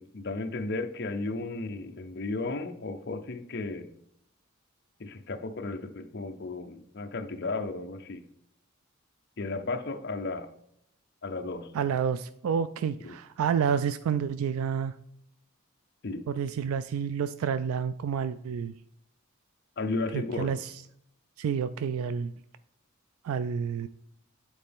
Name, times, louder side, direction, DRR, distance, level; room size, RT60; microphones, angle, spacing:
voice 1, 0.0-3.9 5.0-8.2 9.4-10.5 11.2-11.7 13.0-13.2 16.0-16.3 19.8-20.5, left 3 dB, 50° left, 6 dB, 0.6 m, -34 dB
voice 2, 11.7-14.9 16.3-18.7 20.1-20.7 21.4-22.3 23.2-23.9, right 7 dB, 80° right, 13 dB, 0.3 m, -29 dB
9.0 x 4.3 x 3.5 m, 0.73 s
head